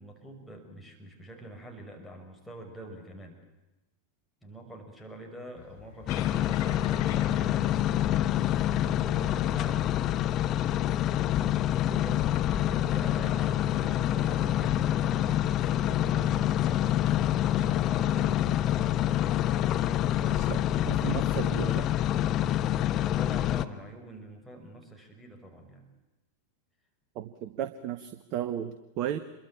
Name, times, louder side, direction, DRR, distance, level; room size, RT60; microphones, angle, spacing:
voice 1, 0.0-3.3 4.4-8.3 8.8-9.9 11.7-16.5 17.2-20.6 22.4-25.9, right 1 dB, ahead, 1 dB, 5.9 m, -46 dB
sound 1, 5.6-21.6, left 8 dB, 55° left, 3.5 m, -47 dB
sound 2, 6.1-23.6, left 12 dB, 35° left, 1.2 m, -27 dB
voice 2, 20.4-21.8 27.1-29.2, right 10 dB, 40° right, 12 dB, 1.2 m, -34 dB
27.5 x 23.0 x 8.6 m, 1.0 s
figure-of-eight pair, 90°, 0 cm